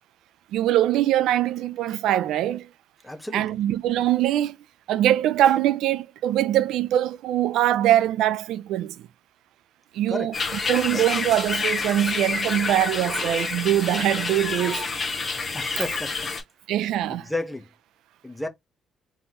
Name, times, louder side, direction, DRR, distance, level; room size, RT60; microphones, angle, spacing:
voice 1, 0.5-2.7 3.3-4.6 4.9-9.1 9.9-14.8 16.7-17.3, right 12 dB, 80° right, 0.4 m, -23 dB
voice 2, 3.0-3.4 10.1-10.3 15.5-16.1 17.1-17.6 18.2-18.5, left 2 dB, 5° left, 0.8 m, -31 dB
sound 1, 10.3-16.4, left 4 dB, 20° left, 1.7 m, -28 dB
3.9 x 3.9 x 2.9 m
cardioid pair, 170°, 0 cm